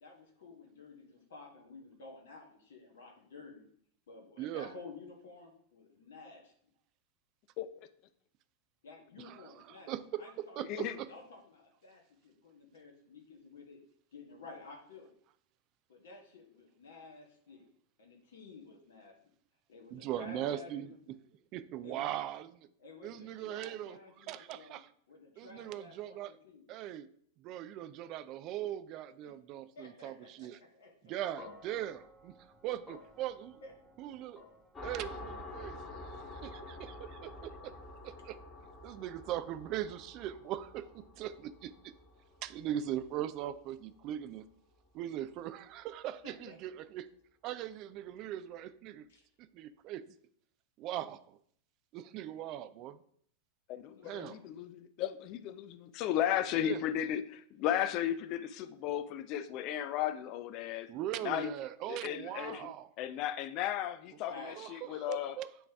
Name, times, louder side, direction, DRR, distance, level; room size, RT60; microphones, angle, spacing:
voice 1, 0.0-3.7 4.1-6.5 8.8-10.6 10.9-13.8 14.1-15.1 15.9-17.7 18.0-19.3 19.7-20.9 21.8-22.2 22.8-24.8 25.1-26.7 29.7-31.1 33.6-33.9 46.2-46.6 49.1-49.2 53.8-54.4 64.3-64.6, left 3 dB, 60° left, 1 dB, 1.3 m, -52 dB
voice 2, 4.4-4.7 9.2-11.1 19.9-20.9 21.5-22.7 23.0-24.0 24.3-24.9 25.4-26.3 26.7-27.1 27.4-30.6 31.0-32.3 32.6-33.6 34.0-34.4 34.8-35.8 36.0-37.7 38.0-38.4 38.8-41.9 42.4-44.4 44.9-47.1 47.4-49.0 49.4-50.1 50.8-51.4 51.9-53.0 54.0-54.3 56.6-56.8 60.9-62.9 64.3-65.7, right 12 dB, 40° right, 13 dB, 0.4 m, -40 dB
voice 3, 7.6-7.9 10.6-11.0 53.7-60.9 61.2-61.5 61.9-62.7 63.0-65.4, left 11 dB, 40° left, 13 dB, 0.5 m, -35 dB
sound 1, 31.4-39.7, left 2 dB, 5° left, 1.3 m, -59 dB
sound 2, 34.7-44.0, left 2 dB, 25° left, 1.5 m, -48 dB
8.8 x 3.2 x 3.5 m, 0.63 s
figure-of-eight pair, 90°, 0 cm